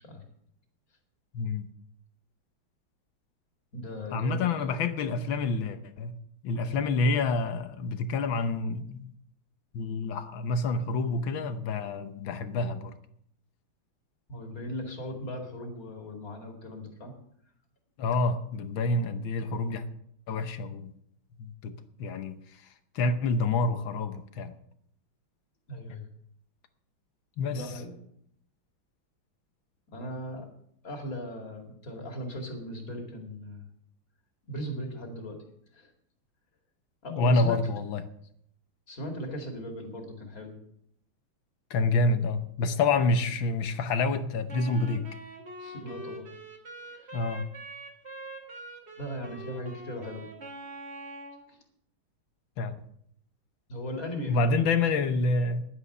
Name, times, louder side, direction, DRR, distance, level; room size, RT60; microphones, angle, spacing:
voice 1, 1.3-1.7 4.1-6.1 6.4-9.1 9.7-12.9 18.0-19.8 20.3-20.9 21.4-21.7 22.0-22.4 22.9-24.5 27.4-27.7 37.1-38.0 41.7-45.0 47.1-47.4 52.6-52.7 54.3-55.6, left 3 dB, 70° left, 10 dB, 1.6 m, -27 dB
voice 2, 3.7-4.7 14.3-17.1 25.7-26.1 27.5-27.9 29.9-30.5 30.8-33.6 34.5-35.4 35.7-35.9 37.0-37.6 38.9-40.6 45.6-46.3 46.8-47.2 49.0-50.3 51.5-51.6 53.7-54.7, equal, 40° left, 3 dB, 2.7 m, -38 dB
Wind instrument woodwind instrument, 44.5-51.4, right 2 dB, 30° right, 2.3 m, -44 dB
10.5 x 9.8 x 6.7 m, 0.69 s
omnidirectional pair, 2.3 m